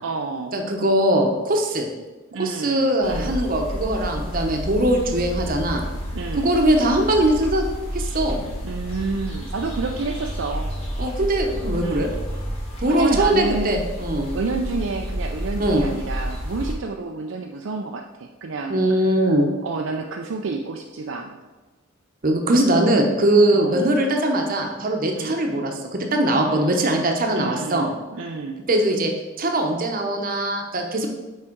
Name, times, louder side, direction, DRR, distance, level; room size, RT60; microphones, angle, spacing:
voice 1, 0.0-0.6 2.3-3.3 6.1-6.5 8.6-10.7 11.8-12.1 12.9-13.8 14.3-19.1 19.6-21.4 23.5-23.9 25.2-25.4 26.5-27.1 27.4-28.6, right 3 dB, 65° right, 2 dB, 0.4 m, -29 dB
voice 2, 0.5-1.9 2.4-5.8 6.3-7.6 7.9-8.4 11.0-12.1 12.8-14.3 15.6-15.8 18.7-19.5 22.2-27.9 28.7-29.1 29.4-31.1, right 1 dB, 40° right, 3 dB, 0.9 m, -21 dB
sound 1, 3.0-16.7, equal, 30° left, 1.6 m, -30 dB
6.2 x 4.8 x 4.5 m, 1.2 s
head